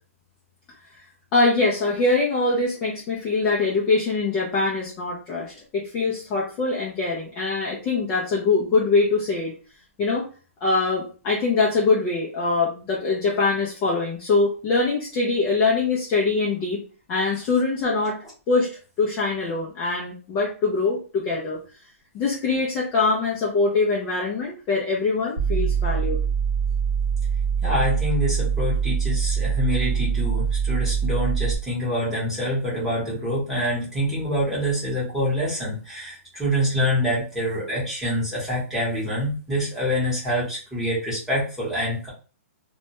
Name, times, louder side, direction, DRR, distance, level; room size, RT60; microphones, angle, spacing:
voice 1, 1.3-9.5 10.0-10.3 10.6-16.8 17.1-18.2 18.5-18.7 19.0-21.6 22.1-26.2, left 3 dB, 15° left, -4 dB, 0.4 m, -23 dB
sound 1, 25.4-31.6, right 7 dB, 35° right, 0.8 m, -24 dB
voice 2, 27.6-42.1, equal, 5° right, -8 dB, 0.9 m, -26 dB
2.1 x 2.1 x 2.8 m, 0.37 s
hypercardioid pair, 165°, 8 cm